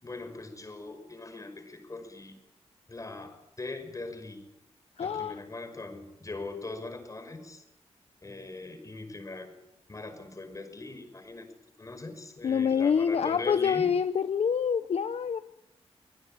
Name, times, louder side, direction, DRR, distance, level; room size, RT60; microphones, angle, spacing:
voice 1, 0.0-2.4 2.9-4.5 5.0-7.6 8.2-9.6 9.9-11.5 11.8-13.9, left 3 dB, 30° left, 7 dB, 5.5 m, -41 dB
voice 2, 5.0-5.4 12.4-15.4, left 7 dB, 65° left, 11 dB, 0.8 m, -26 dB
24.0 x 19.0 x 9.1 m, 0.88 s
wide cardioid pair, 110°, 11 cm